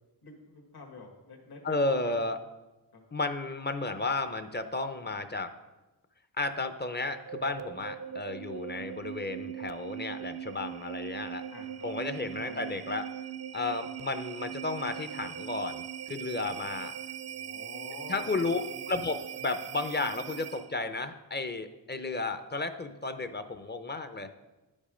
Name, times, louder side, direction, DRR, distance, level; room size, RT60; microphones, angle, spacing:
voice 1, 0.2-2.2 2.9-3.0 8.7-8.8 11.5-11.9 12.2-12.8 17.2-19.0, left 3 dB, 70° left, 1 dB, 1.6 m, -48 dB
voice 2, 1.6-2.4 3.1-5.5 6.4-11.4 11.8-13.1 13.5-16.9 18.1-18.6 18.9-24.3, left 3 dB, 25° left, 9 dB, 0.6 m, -33 dB
sound 1, 6.9-20.8, right 9 dB, 40° right, 0.4 m, -40 dB
10.0 x 5.4 x 5.0 m, 1.1 s
wide cardioid pair, 85°, 40 cm